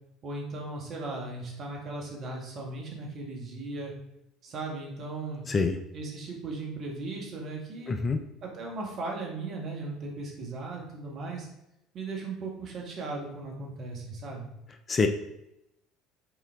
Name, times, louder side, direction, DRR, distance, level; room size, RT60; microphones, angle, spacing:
voice 1, 0.2-3.9 4.4-5.5 5.9-7.9 8.4-11.5 11.9-14.5, right 3 dB, 50° right, -1 dB, 2.0 m, -37 dB
voice 2, 7.9-8.2 14.9-15.1, left 4 dB, 35° left, 7 dB, 0.7 m, -25 dB
7.1 x 4.5 x 3.7 m, 0.85 s
hypercardioid pair, 65°, 0 cm